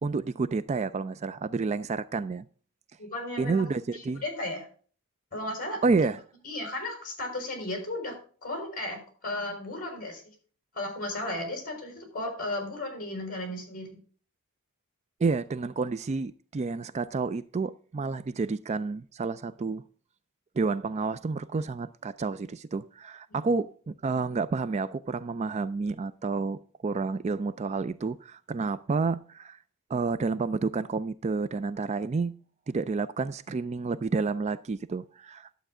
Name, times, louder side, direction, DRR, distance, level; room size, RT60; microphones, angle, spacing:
voice 1, 0.0-2.4 3.4-4.2 5.8-6.2 15.2-19.8 20.6-29.6 29.9-32.3 32.7-35.5, right 4 dB, 30° right, 0.3 m, -30 dB
voice 2, 3.0-3.6 3.9-4.7 5.3-5.8 6.4-8.1 8.4-10.2 10.7-14.0 23.3-23.4, left 1 dB, 40° left, 5.4 m, -35 dB
11.5 x 8.0 x 3.7 m
head